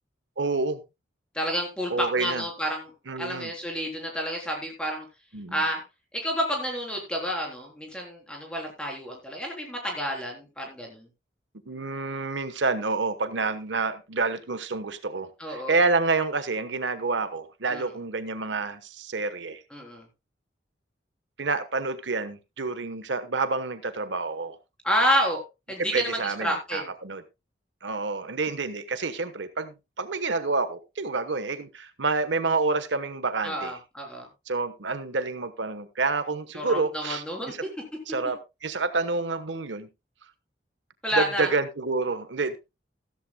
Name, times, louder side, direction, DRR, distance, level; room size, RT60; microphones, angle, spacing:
voice 1, 0.4-0.8 1.9-2.4 3.1-3.5 5.3-5.6 11.7-19.6 21.4-24.6 25.9-27.2 27.8-33.7 34.5-37.6 38.1-39.9 41.2-42.6, right 3 dB, 85° right, 1.1 m, -28 dB
voice 2, 1.3-5.1 5.5-5.8 6.1-11.1 15.4-15.8 17.7-17.9 19.7-20.1 24.8-25.4 25.7-26.9 33.4-34.3 36.6-37.5 41.0-41.5, equal, 5° left, 3.5 m, -29 dB
14.5 x 13.5 x 2.2 m
head